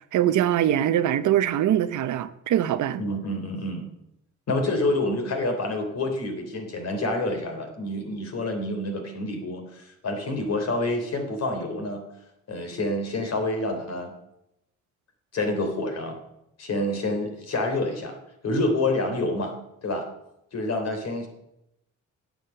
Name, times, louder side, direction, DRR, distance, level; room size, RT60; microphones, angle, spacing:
voice 1, 0.0-3.0, right 11 dB, 75° right, 0.8 m, -23 dB
voice 2, 3.0-3.8 4.5-12.0 12.5-14.1 15.3-16.2 16.6-18.2 18.4-19.5 19.8-20.0 20.5-21.3, left 2 dB, 60° left, 3.5 m, -27 dB
9.2 x 9.0 x 7.7 m
cardioid pair, 90°, 30 cm